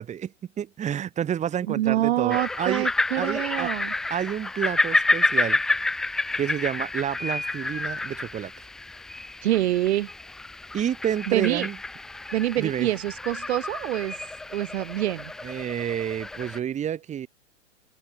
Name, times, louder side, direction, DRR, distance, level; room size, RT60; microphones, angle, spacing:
voice 1, 0.0-2.9 3.2-3.7 4.1-5.6 6.4-8.5 10.7-11.8 12.6-12.9 15.4-17.3, right 9 dB, 20° right, 2.7 m, -29 dB
voice 2, 1.7-3.9 9.4-10.1 11.3-11.7 12.3-14.2 14.5-15.3, right 14 dB, 55° right, 2.1 m, -26 dB
sound 1, 2.3-16.6, left 2 dB, ahead, 0.3 m, -29 dB
hypercardioid pair, 125°, 38 cm